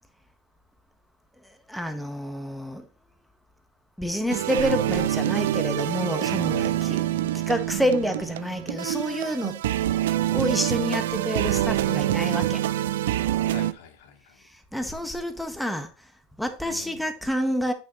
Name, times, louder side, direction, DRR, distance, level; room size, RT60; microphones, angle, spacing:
voice 1, 1.7-2.8 4.0-7.0 7.3-9.6 10.3-12.6 14.7-15.9 16.4-17.7, equal, ahead, 1.3 m, -28 dB
sound 1, 4.3-13.7, right 13 dB, 80° right, 0.5 m, -26 dB
voice 2, 7.0-7.4 13.5-14.4 14.8-15.2 16.6-17.1, left 6 dB, 70° left, 2.1 m, -46 dB
8.3 x 6.6 x 3.1 m
hypercardioid pair, 110°, 0 cm